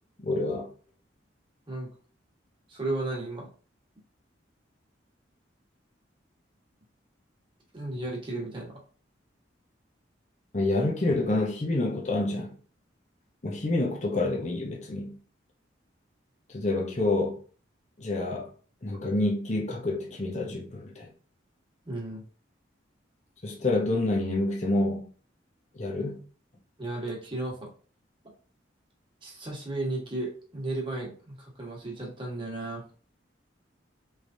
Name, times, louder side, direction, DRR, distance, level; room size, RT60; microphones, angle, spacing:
voice 1, 0.2-0.7 10.5-12.5 13.4-15.2 16.5-17.4 18.0-18.5 18.8-21.1 23.4-25.0 25.7-26.2, left 2 dB, 40° left, 0.8 m, -28 dB
voice 2, 2.7-3.5 7.7-8.7 21.8-22.2 26.8-27.6 29.2-32.8, right 2 dB, 25° right, 1.4 m, -34 dB
4.7 x 3.3 x 2.7 m
head